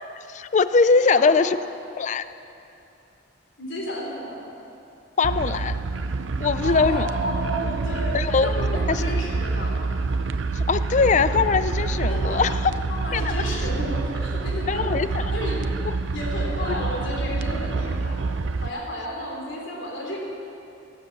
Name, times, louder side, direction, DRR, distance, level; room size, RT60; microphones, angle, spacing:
voice 1, 0.3-1.6 2.0-2.2 5.2-5.8 6.4-7.1 8.1-8.5 8.9-9.3 10.5-12.7 13.1-13.3 14.7-15.2 16.7-16.8, left 4 dB, 40° left, 13 dB, 0.4 m, -21 dB
voice 2, 3.6-4.4 6.6-9.7 12.1-12.4 12.9-14.8 15.1-15.6 16.1-18.2 18.6-20.2, equal, 75° left, -2 dB, 3.3 m, -32 dB
sound 1, 5.2-18.7, right 3 dB, 75° right, 0.5 m, -27 dB
18.5 x 7.7 x 7.3 m, 2.8 s
head